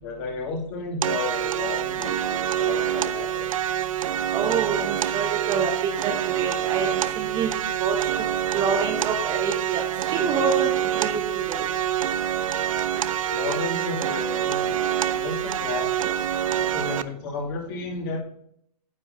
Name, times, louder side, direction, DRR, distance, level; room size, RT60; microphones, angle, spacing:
voice 1, 0.0-3.5 13.2-14.9 15.2-16.1 16.5-18.2, left 3 dB, 35° left, 0 dB, 2.3 m, -32 dB
sound 1, 1.0-17.0, right 10 dB, 55° right, 0.5 m, -26 dB
voice 2, 4.3-5.7 6.0-7.5 7.8-8.1 8.5-11.7, right 5 dB, 20° right, 4 dB, 0.9 m, -27 dB
9.6 x 7.8 x 2.6 m, 0.69 s
figure-of-eight pair, 120°, 21 cm